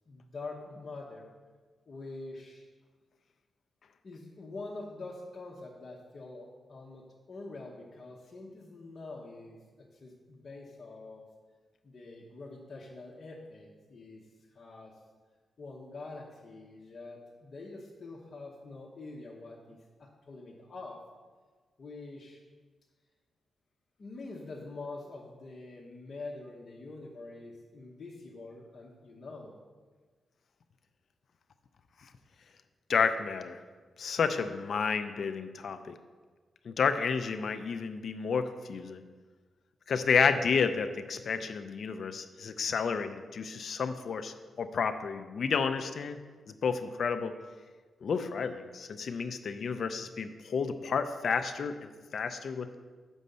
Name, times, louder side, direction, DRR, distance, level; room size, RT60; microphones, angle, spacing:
voice 1, 0.1-1.3 1.9-2.7 4.0-11.3 11.8-14.3 14.5-15.0 15.6-21.0 21.8-22.4 24.0-29.6, left 3 dB, 45° left, -4 dB, 1.0 m, -45 dB
voice 2, 32.9-33.6 34.0-36.0 36.6-39.0 39.9-46.2 46.6-47.3 48.0-52.7, left 5 dB, 60° left, 10 dB, 0.5 m, -31 dB
6.2 x 5.3 x 6.8 m, 1.4 s
wide cardioid pair, 120°, 0 cm